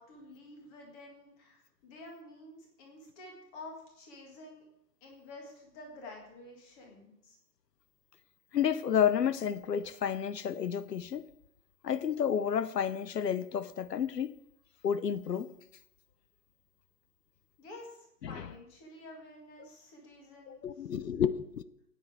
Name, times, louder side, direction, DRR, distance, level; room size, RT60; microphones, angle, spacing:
voice 1, 0.0-4.6 5.0-7.4 17.6-20.6, left 2 dB, 15° left, 1.7 m, -50 dB
voice 2, 8.5-11.3 11.8-14.4 14.8-15.5 18.2-18.5 19.6-19.7 20.5-21.6, left 8 dB, 75° left, 0.9 m, -31 dB
13.0 x 9.3 x 4.8 m
hypercardioid pair, 165°, 49 cm